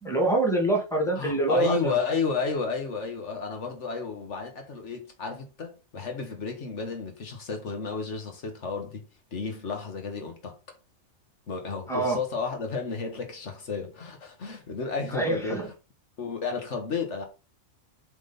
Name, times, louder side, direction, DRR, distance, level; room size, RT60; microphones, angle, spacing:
voice 1, 0.0-2.0 11.9-12.2 15.1-15.7, right 2 dB, ahead, 1.9 m, -25 dB
voice 2, 1.1-9.0 9.3-10.6 11.5-15.7 16.2-17.2, left 5 dB, 75° left, 1.6 m, -32 dB
7.1 x 3.6 x 4.0 m
omnidirectional pair, 1.2 m